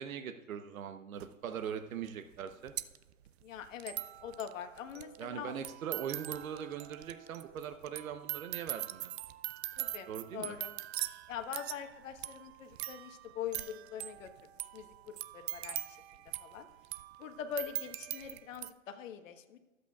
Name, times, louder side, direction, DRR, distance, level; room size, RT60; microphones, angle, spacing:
voice 1, 0.0-2.7 5.2-9.1 10.1-10.5, right 8 dB, 80° right, 8 dB, 1.0 m, -41 dB
sound 1, 1.2-1.3 2.1-2.2 2.3-18.7, right 14 dB, 50° right, 0.5 m, -42 dB
voice 2, 3.4-3.9 4.2-5.5 9.8-10.7 11.3-14.3 14.7-16.0 16.4-16.7 17.2-19.6, left 8 dB, 65° left, 7 dB, 1.4 m, -43 dB
24.5 x 8.2 x 2.4 m, 1.2 s
hypercardioid pair, 135°, 41 cm